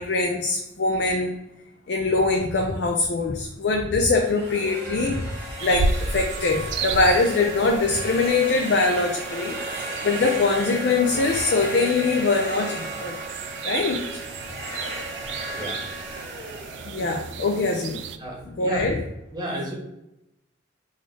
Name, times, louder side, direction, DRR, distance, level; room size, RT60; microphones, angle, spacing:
voice 1, 0.0-1.4 1.9-5.3 5.6-9.6 10.0-13.2 13.6-14.0 16.9-18.0 18.6-19.0, left 3 dB, 65° left, 2 dB, 0.4 m, -23 dB
sound 1, 4.1-18.0, right 1 dB, 60° right, 1.3 m, -35 dB
sound 2, 5.6-18.2, right 4 dB, 75° right, 0.3 m, -33 dB
voice 2, 15.5-15.9 17.3-17.5 18.1-18.9 19.3-19.8, right 1 dB, 20° right, -3 dB, 1.0 m, -33 dB
3.8 x 2.5 x 3.2 m, 0.86 s
head